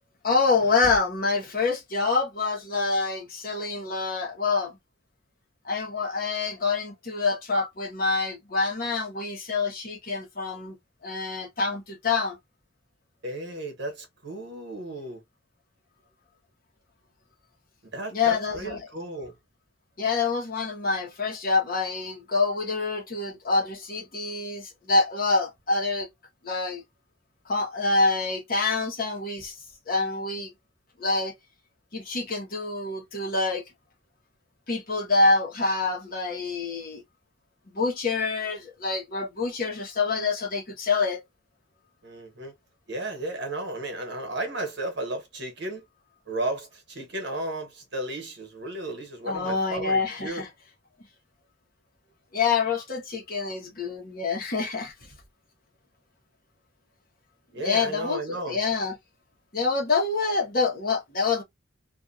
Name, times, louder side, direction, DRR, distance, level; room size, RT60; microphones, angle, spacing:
voice 1, 0.2-4.8 5.6-10.7 11.0-12.4 18.1-18.8 20.0-26.1 26.4-26.8 27.5-29.6 29.9-30.5 31.0-31.3 31.9-33.6 34.7-37.0 37.7-41.2 49.3-50.5 52.3-54.9 57.6-59.0 59.5-61.4, left 4 dB, 45° left, 1.1 m, -26 dB
voice 2, 13.2-15.2 17.9-19.3 42.0-42.5 42.9-45.8 46.3-50.4 57.5-58.6, right 1 dB, 60° right, 1.1 m, -34 dB
2.6 x 2.4 x 2.5 m
head